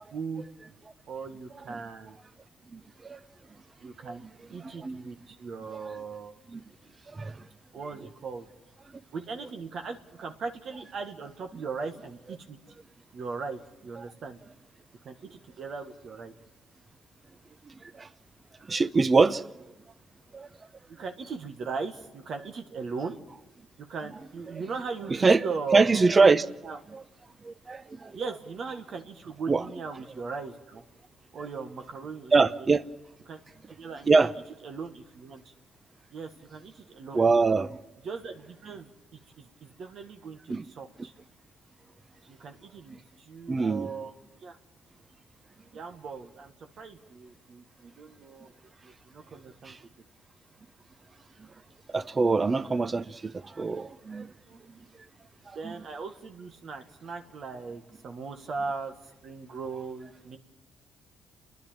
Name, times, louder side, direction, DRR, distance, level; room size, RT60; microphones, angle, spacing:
voice 1, 0.1-0.5 1.1-2.2 3.8-4.2 4.5-6.3 7.7-8.5 9.1-12.6 13.1-14.4 15.0-16.3 20.9-23.2 23.8-26.3 26.6-26.8 28.1-30.8 31.3-32.5 33.3-33.4 33.7-34.1 34.6-35.5 36.1-37.2 38.0-38.9 39.4-41.1 42.3-44.1 44.4-44.6 45.7-48.5 48.8-49.8 54.5-54.6 55.5-58.9 59.2-60.4, right 4 dB, 60° right, 1.5 m, -38 dB
voice 2, 2.7-3.2 4.6-5.0 6.5-6.6 7.1-7.5 14.0-14.1 17.7-18.1 18.6-19.5 20.3-20.5 24.5-24.6 25.1-25.5 25.7-26.4 26.9-27.0 27.4-28.2 29.5-29.6 32.3-32.8 34.1-34.3 37.1-37.8 40.5-40.6 43.5-43.9 49.6-49.8 51.4-51.5 51.9-54.3 54.7-54.8 55.5-55.7, right 4 dB, 30° right, 0.7 m, -24 dB
29.5 x 11.0 x 8.9 m
cardioid pair, 90°, 0 cm